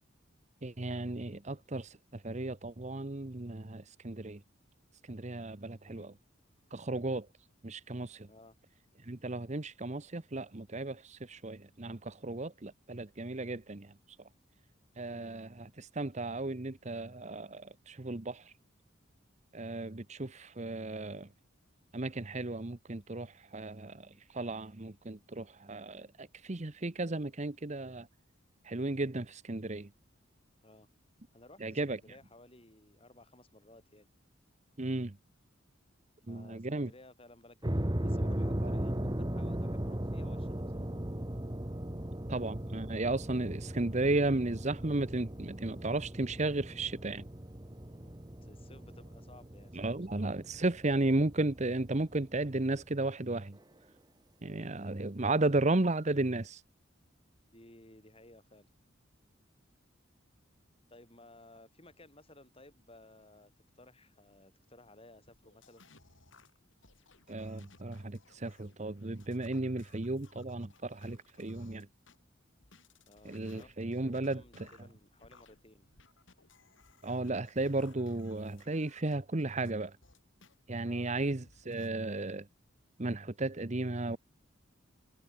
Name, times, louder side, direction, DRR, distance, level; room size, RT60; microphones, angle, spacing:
voice 1, 0.6-4.4 5.0-6.1 6.7-7.3 7.6-8.3 9.0-13.9 15.0-18.5 19.5-21.3 21.9-28.1 28.6-29.9 31.6-32.0 34.8-35.2 36.3-36.9 42.3-47.2 49.7-53.6 54.4-56.6 67.3-71.9 73.2-74.4 77.0-80.0 80.7-82.5 83.0-84.2, right 2 dB, 35° right, 1.0 m, -34 dB
voice 2, 5.8-6.1 8.3-8.6 15.0-15.4 30.6-30.9 31.3-34.1 36.2-40.9 47.9-50.3 57.5-58.7 60.9-65.8 73.1-75.9 80.8-81.1, left 2 dB, 30° left, 7.9 m, -58 dB
sound 1, 37.6-52.8, right 1 dB, 20° right, 1.5 m, -38 dB
sound 2, 65.3-72.2 72.6-80.5 81.0-81.9, left 3 dB, 70° left, 4.4 m, -62 dB
head